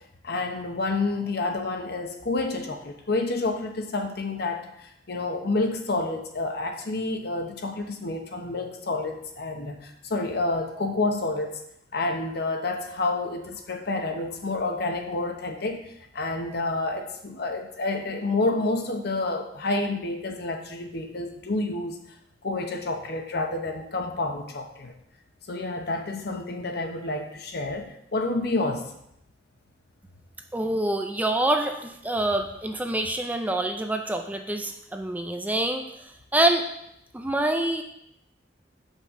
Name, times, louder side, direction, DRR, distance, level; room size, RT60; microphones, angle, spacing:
voice 1, 0.2-11.6 11.9-15.8 16.1-22.0 22.4-24.9 25.5-28.9, left 2 dB, 60° left, 4 dB, 0.9 m, -29 dB
voice 2, 30.5-35.9 36.3-36.7 37.1-37.8, right 1 dB, 10° right, 5 dB, 0.4 m, -26 dB
6.9 x 5.5 x 3.6 m, 0.76 s
head